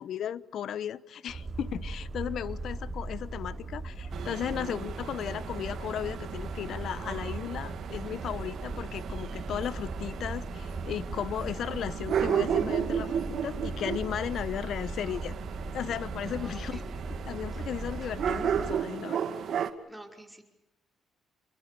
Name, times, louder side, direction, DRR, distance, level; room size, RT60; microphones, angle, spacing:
voice 1, 0.0-15.4 15.7-16.8 17.3-19.2, left 10 dB, 70° left, 17 dB, 1.1 m, -35 dB
sound 1, 1.3-18.7, right 2 dB, 30° right, 4.9 m, -38 dB
sound 2, 4.1-19.7, right 8 dB, 65° right, 2.3 m, -34 dB
voice 2, 8.0-8.3 16.2-16.9 17.5-17.7 19.9-20.4, right 1 dB, 10° right, 3 dB, 5.3 m, -49 dB
30.0 x 22.5 x 6.9 m, 0.92 s
cardioid pair, 90°, 0 cm